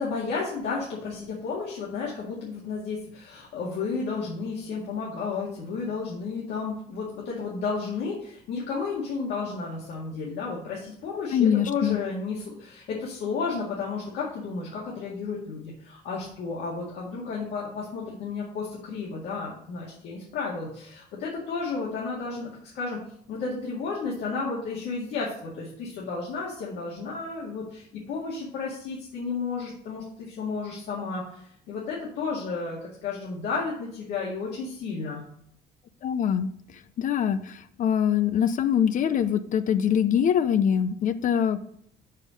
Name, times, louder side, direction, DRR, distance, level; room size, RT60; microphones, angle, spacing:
voice 1, 0.0-23.0 23.3-35.2, left 4 dB, 80° left, -5 dB, 2.0 m, -32 dB
voice 2, 11.3-12.0 36.0-36.5 37.0-41.8, left 8 dB, 50° left, 11 dB, 0.5 m, -23 dB
5.6 x 5.3 x 6.3 m, 0.65 s
cardioid pair, 110°, 17 cm